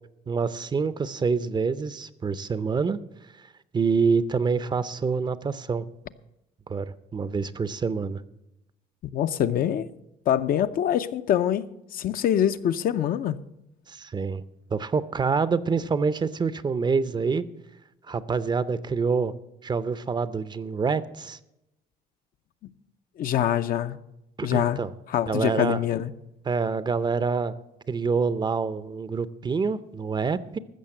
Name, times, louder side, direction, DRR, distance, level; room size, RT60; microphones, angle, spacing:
voice 1, 0.3-3.0 3.7-5.9 6.7-8.2 13.9-14.4 14.7-17.4 18.1-19.3 19.6-21.4 24.4-24.9 25.3-25.8 26.5-27.5 27.9-30.6, right 5 dB, 25° right, 0.6 m, -26 dB
voice 2, 9.1-9.9 10.3-11.7 11.9-13.4 23.2-24.0 24.4-24.8 25.1-26.1, left 10 dB, 60° left, 0.6 m, -24 dB
14.5 x 6.4 x 7.6 m
cardioid pair, 110°, 17 cm